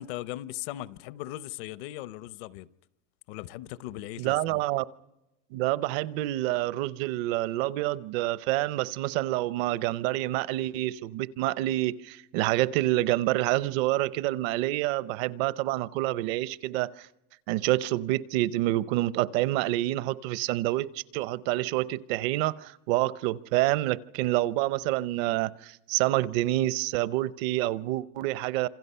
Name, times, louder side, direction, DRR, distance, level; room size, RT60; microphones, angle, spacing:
voice 1, 0.0-2.7 3.3-4.6, left 15 dB, 55° left, 0.8 m, -38 dB
voice 2, 4.2-4.8 5.5-17.1 17.5-28.7, right 16 dB, 55° right, 0.8 m, -27 dB
27.5 x 26.5 x 5.6 m
supercardioid pair, 155°, 37 cm